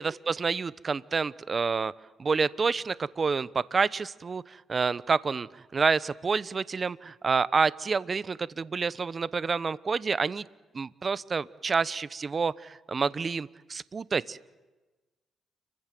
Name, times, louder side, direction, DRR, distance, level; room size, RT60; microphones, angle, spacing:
voice 1, 0.0-1.9 2.2-10.4 10.7-14.4, right 5 dB, 35° right, 20 dB, 0.9 m, -28 dB
29.5 x 24.0 x 7.7 m, 1.2 s
cardioid pair, 90°, 0 cm